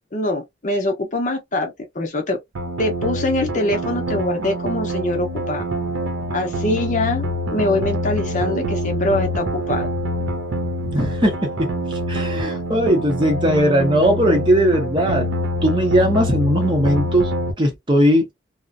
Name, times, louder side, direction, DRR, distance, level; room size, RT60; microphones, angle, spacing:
voice 1, 0.1-2.4 2.8-5.6 6.3-7.2 7.5-9.9, left 2 dB, 40° left, 0.6 m, -23 dB
sound 1, 2.5-17.5, equal, 80° right, 0.5 m, -25 dB
voice 2, 10.8-11.5 11.9-15.3 15.6-17.3 17.6-18.3, equal, 25° right, 0.7 m, -18 dB
2.4 x 2.1 x 2.4 m
head